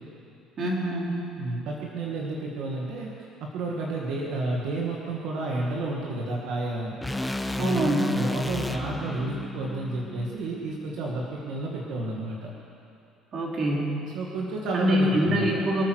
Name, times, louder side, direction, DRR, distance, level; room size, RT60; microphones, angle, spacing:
voice 1, 0.6-1.3 7.6-8.2 13.3-14.0 14.7-15.8, equal, 40° right, -2 dB, 3.5 m, -25 dB
voice 2, 1.4-3.1 3.4-7.0 8.0-12.5 14.0-15.5, right 2 dB, 70° right, -2 dB, 2.0 m, -31 dB
sound 1, 7.0-11.2, left 1 dB, 5° left, 0.7 m, -32 dB
24.0 x 9.4 x 6.4 m, 2.7 s
cardioid pair, 125°, 0 cm